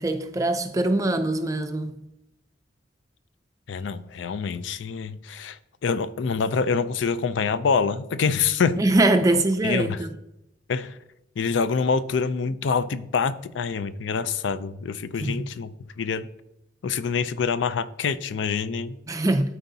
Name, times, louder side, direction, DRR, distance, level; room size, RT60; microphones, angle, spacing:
voice 1, 0.0-1.9 8.8-10.1 15.2-15.5 19.1-19.6, right 2 dB, 20° right, 0.4 m, -23 dB
voice 2, 3.7-8.8 9.6-10.0 10.7-11.0 11.4-16.3 16.8-19.0, left 5 dB, 80° left, 0.4 m, -26 dB
12.5 x 4.5 x 2.7 m
head